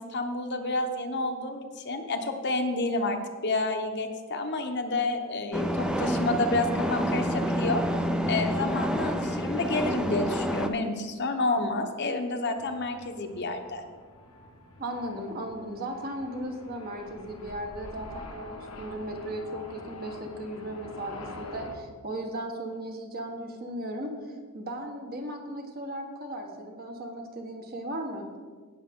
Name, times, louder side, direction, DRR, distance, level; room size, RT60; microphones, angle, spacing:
voice 1, 0.0-7.8 8.3-13.8, left 2 dB, 50° left, 5 dB, 1.0 m, -29 dB
sound 1, 5.5-10.7, equal, 5° right, 0.6 m, -28 dB
sound 2, 12.6-21.8, left 2 dB, 85° left, 1.4 m, -45 dB
voice 2, 14.8-24.2 24.5-28.3, right 1 dB, 45° right, 3 dB, 1.4 m, -36 dB
17.5 x 6.6 x 3.7 m, 1.5 s
head